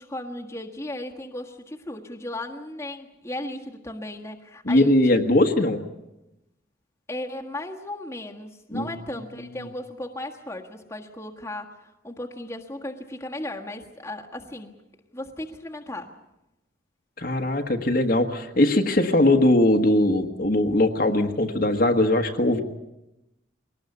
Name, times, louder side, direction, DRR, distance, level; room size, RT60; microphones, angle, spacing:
voice 1, 0.0-4.9 7.1-14.8 15.1-16.2, left 1 dB, 15° left, 0 dB, 1.6 m, -36 dB
voice 2, 4.6-5.8 8.7-8.9 17.2-22.6, left 1 dB, 45° left, 4 dB, 1.4 m, -20 dB
22.5 x 19.0 x 8.3 m, 0.93 s
head